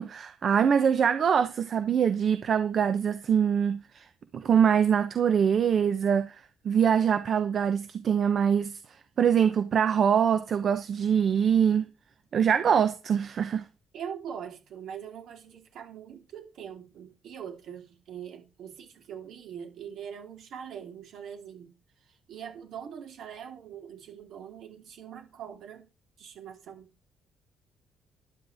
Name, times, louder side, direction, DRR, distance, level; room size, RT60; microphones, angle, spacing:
voice 1, 0.0-4.1 4.3-8.8 9.2-11.9 12.3-13.6, right 8 dB, 45° right, 0.9 m, -24 dB
voice 2, 13.9-25.9 26.2-26.9, right 8 dB, 65° right, 3.8 m, -42 dB
12.0 x 11.0 x 3.6 m
cardioid pair, 130°, 0 cm